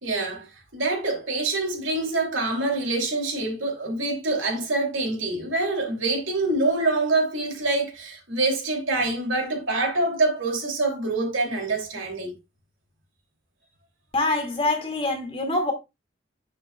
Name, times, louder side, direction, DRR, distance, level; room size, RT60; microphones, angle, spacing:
voice 1, 0.0-12.4, right 2 dB, 80° right, 2.9 m, -25 dB
voice 2, 14.1-15.7, left 2 dB, 30° left, 2.2 m, -25 dB
8.9 x 6.6 x 2.3 m
head